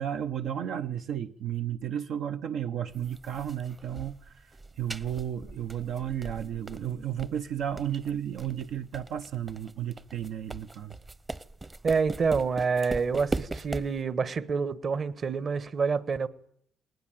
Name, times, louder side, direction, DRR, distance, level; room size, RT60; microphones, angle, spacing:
voice 1, 0.0-11.0, right 10 dB, 80° right, 0.8 m, -33 dB
sound 1, 2.9-14.0, right 3 dB, 25° right, 0.9 m, -40 dB
voice 2, 11.8-16.3, right 5 dB, 45° right, 1.3 m, -27 dB
20.0 x 19.0 x 9.2 m
cardioid pair, 90°, 0 cm